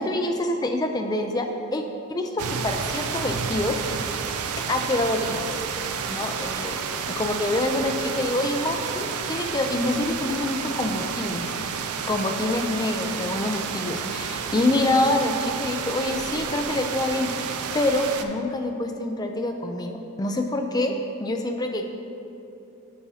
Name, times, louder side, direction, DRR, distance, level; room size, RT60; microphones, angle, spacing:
voice 1, 0.0-1.8 2.1-4.3 4.7-5.5 6.0-6.8 7.1-11.6 12.1-20.9 21.2-21.9, left 1 dB, 15° left, 4 dB, 0.4 m, -26 dB
sound 1, 2.4-18.3, right 6 dB, 80° right, 0.4 m, -30 dB
8.7 x 6.0 x 2.8 m, 2.9 s
head